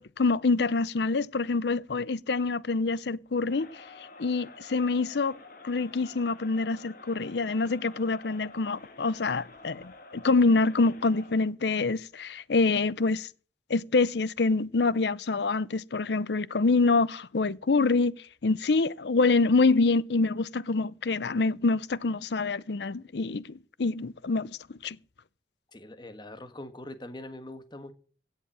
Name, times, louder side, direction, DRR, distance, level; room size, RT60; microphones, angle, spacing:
voice 1, 0.0-3.7 4.2-5.4 5.6-13.3 13.7-24.5 24.8-25.0, left 3 dB, 70° left, 0.6 m, -26 dB
Crowd, 3.4-11.5, left 3 dB, 50° left, 2.1 m, -50 dB
voice 2, 25.7-27.9, left 1 dB, 25° left, 1.5 m, -42 dB
16.5 x 7.4 x 7.4 m
head